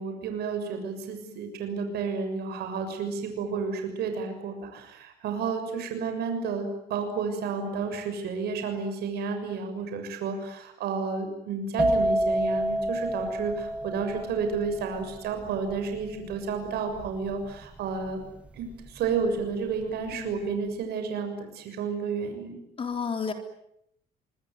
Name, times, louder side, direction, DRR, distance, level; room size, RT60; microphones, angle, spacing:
voice 1, 0.0-18.2 18.5-22.6, right 5 dB, 70° right, 6 dB, 6.8 m, -31 dB
sound 1, 11.8-19.4 19.6-20.1, right 1 dB, 5° right, 2.5 m, -29 dB
voice 2, 20.1-20.5 22.8-23.3, left 6 dB, 30° left, 6 dB, 3.9 m, -32 dB
25.5 x 23.0 x 9.5 m, 0.76 s
cardioid pair, 110°, 17 cm